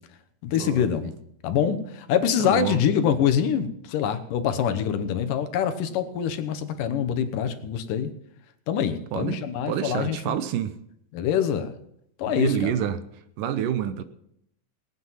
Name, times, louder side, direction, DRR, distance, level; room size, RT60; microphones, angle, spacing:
voice 1, 0.4-1.1 1.4-8.1 8.7-10.4 11.1-11.7 12.2-12.7, left 8 dB, 75° left, 2.5 m, -25 dB
voice 2, 2.4-2.8 9.1-10.8 12.3-13.0 13.4-14.0, right 10 dB, 75° right, 2.3 m, -28 dB
18.5 x 9.5 x 5.7 m
omnidirectional pair, 4.0 m